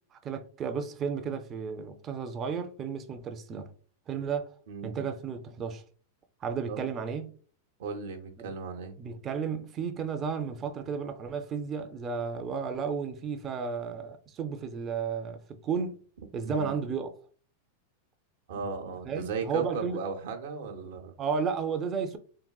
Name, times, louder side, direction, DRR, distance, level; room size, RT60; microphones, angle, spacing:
voice 1, 0.1-3.7 4.1-4.5 4.8-5.8 6.4-7.3 8.4-8.5 9.0-16.0 16.3-17.1 19.1-20.0 21.2-22.2, right 6 dB, 30° right, 0.4 m, -33 dB
voice 2, 4.7-5.0 6.7-6.9 7.8-9.0 16.4-16.8 18.5-21.1, right 5 dB, 75° right, 0.6 m, -36 dB
3.7 x 2.1 x 2.2 m
supercardioid pair, 135°, 0 cm